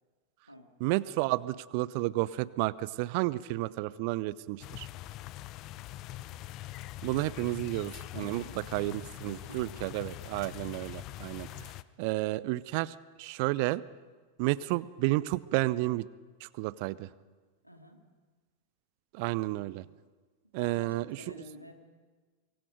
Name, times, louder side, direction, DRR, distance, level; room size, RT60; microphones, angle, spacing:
voice 1, 0.8-4.9 7.0-8.4 8.7-11.7 12.0-13.8 14.4-16.1 16.4-17.1 19.1-19.8 20.5-21.2, right 19 dB, 45° right, 20 dB, 0.6 m, -31 dB
sound 1, 4.6-11.8, left 15 dB, 40° left, 0.7 m, -43 dB
voice 2, 8.1-8.6 9.3-9.8 10.8-10.9 17.6-18.0 20.6-21.7, left 1 dB, 90° left, 3 dB, 2.5 m, -49 dB
24.5 x 23.5 x 5.2 m, 1.4 s
figure-of-eight pair, 90°, 0 cm